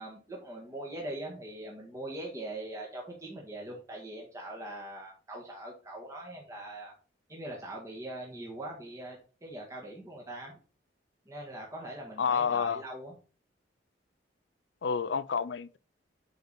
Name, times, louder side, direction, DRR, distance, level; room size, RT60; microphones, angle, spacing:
voice 1, 0.0-7.0 7.3-10.6 11.3-13.1, right 1 dB, 15° right, 1.7 m, -42 dB
voice 2, 12.2-12.8 14.8-15.8, left 6 dB, 70° left, 0.5 m, -29 dB
8.0 x 5.1 x 4.2 m
head